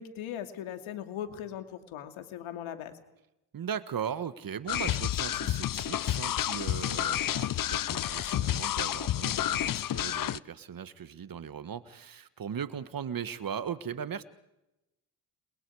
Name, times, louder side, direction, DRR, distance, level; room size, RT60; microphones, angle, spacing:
voice 1, 0.0-2.9, left 10 dB, 80° left, 7 dB, 2.8 m, -39 dB
voice 2, 3.5-14.2, right 8 dB, 45° right, 14 dB, 1.5 m, -38 dB
sound 1, 4.7-10.4, left 12 dB, 45° left, 0.7 m, -30 dB
29.0 x 22.0 x 4.9 m, 0.91 s
supercardioid pair, 75°, 48 cm